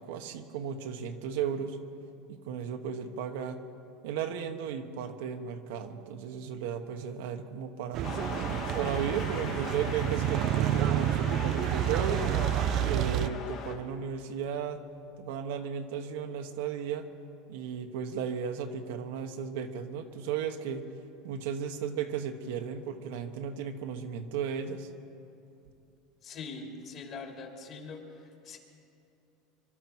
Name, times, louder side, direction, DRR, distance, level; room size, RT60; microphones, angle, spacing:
voice 1, 0.0-1.8 2.3-3.6 4.0-8.1 8.8-12.3 12.8-14.8 15.2-17.1 17.5-20.8 21.2-24.9, right 7 dB, 80° right, 6 dB, 1.1 m, -35 dB
sound 1, 7.9-13.3, right 12 dB, 45° right, 0.4 m, -29 dB
sound 2, 8.0-13.7, left 6 dB, 65° left, 2.1 m, -39 dB
voice 2, 26.2-28.6, left 4 dB, 45° left, 1 dB, 2.8 m, -43 dB
25.0 x 12.5 x 4.6 m, 2.7 s
supercardioid pair, 135°, 0 cm